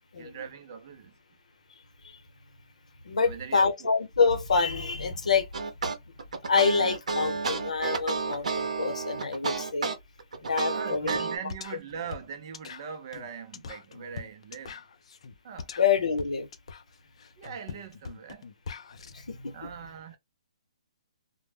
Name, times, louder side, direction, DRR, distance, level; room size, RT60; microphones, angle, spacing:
voice 1, 0.2-1.1 3.3-3.9 10.4-14.8 15.4-15.7 17.4-18.5 19.5-20.2, right 7 dB, 40° right, 0.5 m, -41 dB
voice 2, 3.0-5.5 5.8-5.9 6.4-9.9 10.4-11.2 15.8-16.5 19.1-19.7, left 5 dB, 90° left, 0.8 m, -27 dB
sound 1, 5.5-11.4, right 4 dB, 85° right, 0.6 m, -31 dB
sound 2, 11.1-11.2 11.5-19.1, left 5 dB, 60° left, 0.4 m, -43 dB
2.1 x 2.0 x 3.2 m
hypercardioid pair, 165°, 4 cm